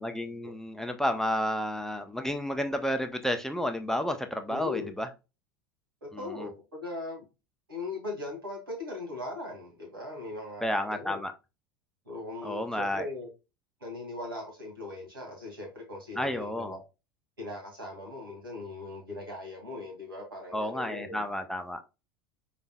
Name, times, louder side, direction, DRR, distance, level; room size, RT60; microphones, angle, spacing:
voice 1, 0.0-5.1 6.4-6.5 10.6-11.3 12.4-13.1 16.2-16.8 20.5-21.8, left 1 dB, 5° left, 0.6 m, -31 dB
voice 2, 4.5-4.9 6.0-7.3 7.7-11.2 12.1-13.3 13.8-16.8 17.4-21.2, left 2 dB, 85° right, 2.1 m, -39 dB
5.4 x 4.0 x 2.3 m
figure-of-eight pair, 80°, 12 cm